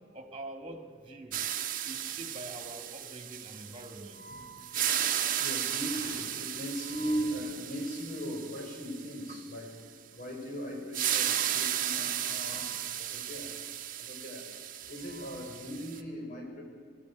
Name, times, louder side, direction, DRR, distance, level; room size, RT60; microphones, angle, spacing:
voice 1, 0.1-1.4 1.8-4.2 12.4-13.2, right 1 dB, 30° right, 6 dB, 2.1 m, -45 dB
sound 1, 1.3-4.2 4.6-9.4 10.9-16.0, right 10 dB, 45° right, 1.0 m, -34 dB
voice 2, 3.5-9.7 10.1-13.5 14.0-14.5 14.9-16.6, equal, 45° left, 0 dB, 4.7 m, -39 dB
20.5 x 14.0 x 9.5 m, 2.1 s
head